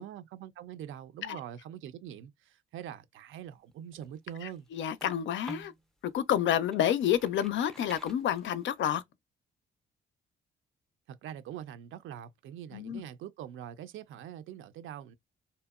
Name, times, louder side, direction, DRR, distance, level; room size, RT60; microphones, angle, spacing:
voice 1, 0.0-4.7 11.1-15.1, right 10 dB, 75° right, 0.4 m, -44 dB
sound 1, 3.7-5.8 6.3-8.8, right 1 dB, ahead, 0.5 m, -50 dB
voice 2, 4.4-5.7 6.0-9.0 12.7-13.0, left 10 dB, 65° left, 0.4 m, -29 dB
2.7 x 2.0 x 2.3 m
supercardioid pair, 65°, 21 cm